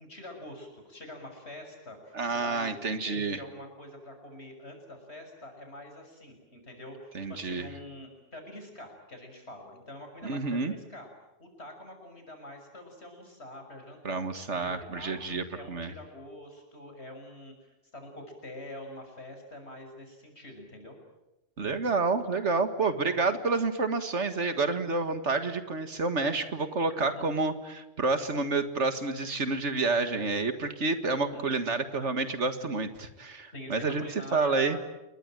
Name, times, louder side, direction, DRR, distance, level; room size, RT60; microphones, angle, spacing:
voice 1, 0.0-2.7 3.0-11.1 11.4-14.2 14.6-21.0 26.9-27.2 31.3-31.5 33.5-34.8, left 1 dB, 65° left, 4 dB, 6.7 m, -45 dB
voice 2, 2.1-3.4 7.1-7.7 10.2-10.7 14.0-15.9 21.6-34.0 34.3-34.8, right 3 dB, 75° right, 10 dB, 2.1 m, -29 dB
28.5 x 22.0 x 9.1 m, 0.96 s
omnidirectional pair, 1.2 m